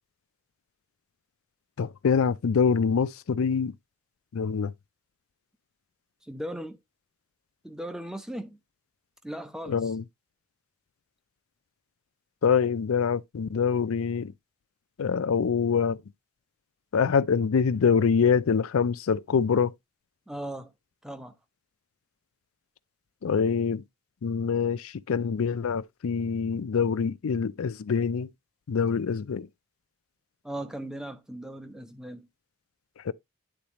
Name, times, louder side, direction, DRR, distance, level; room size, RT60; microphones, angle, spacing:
voice 1, 1.8-3.7 4.3-4.7 9.7-10.0 12.4-14.3 15.0-16.0 16.9-19.7 23.2-23.8 24.2-28.3 28.7-29.5 33.0-33.1, left 6 dB, 80° left, 0.4 m, -25 dB
voice 2, 6.3-6.8 7.6-8.6 9.2-9.9 20.3-20.7 21.0-21.3 30.4-32.3, right 1 dB, 5° right, 0.6 m, -37 dB
10.0 x 4.0 x 2.9 m
head